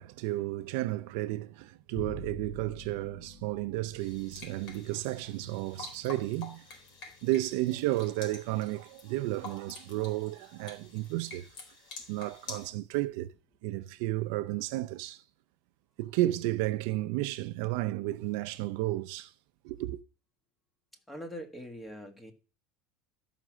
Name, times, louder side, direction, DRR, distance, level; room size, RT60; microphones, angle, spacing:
voice 1, 0.0-6.6 7.2-11.5 12.1-13.3 13.6-15.2 16.0-19.3 19.6-20.0, right 17 dB, 65° right, 0.6 m, -32 dB
Bowed string instrument, 1.9-8.4, left 2 dB, 30° left, 1.0 m, -49 dB
sound 1, 4.0-12.7, left 4 dB, 50° left, 4.5 m, -48 dB
voice 2, 21.1-22.3, equal, 10° left, 1.6 m, -42 dB
13.0 x 5.9 x 6.2 m
supercardioid pair, 165°, 0 cm